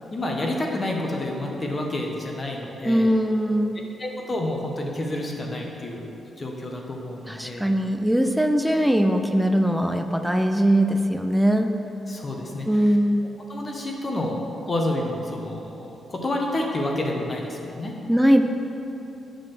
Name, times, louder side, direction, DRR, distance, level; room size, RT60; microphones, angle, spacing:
voice 1, 0.1-3.1 4.0-6.1 6.4-7.7 12.1-12.9 13.5-14.4 14.7-17.9, left 1 dB, 25° left, 0 dB, 0.8 m, -29 dB
voice 2, 2.8-3.8 7.3-11.7 12.7-13.2 18.1-18.4, equal, 5° right, 6 dB, 0.3 m, -21 dB
8.5 x 3.8 x 6.5 m, 2.9 s
wide cardioid pair, 145°, 0 cm